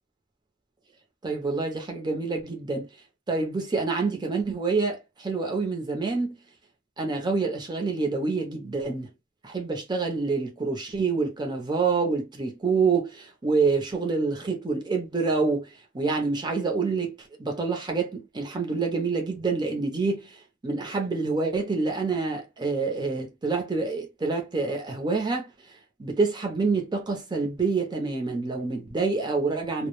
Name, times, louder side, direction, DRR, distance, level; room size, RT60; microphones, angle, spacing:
voice 1, 1.2-2.9 3.3-6.4 7.0-9.1 9.4-15.7 15.9-17.1 17.4-20.3 20.6-25.5 26.0-29.9, right 4 dB, 20° right, 0.6 m, -27 dB
2.2 x 2.1 x 3.0 m
head